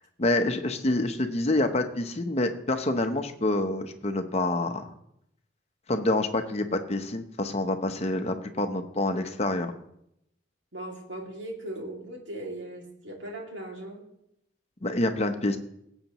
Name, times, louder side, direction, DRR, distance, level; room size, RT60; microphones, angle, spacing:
voice 1, 0.2-4.9 5.9-9.7 14.8-15.6, left 2 dB, 35° left, 7 dB, 0.8 m, -27 dB
voice 2, 10.7-14.0, right 1 dB, 75° right, 0 dB, 2.4 m, -38 dB
18.5 x 8.1 x 3.0 m, 0.78 s
head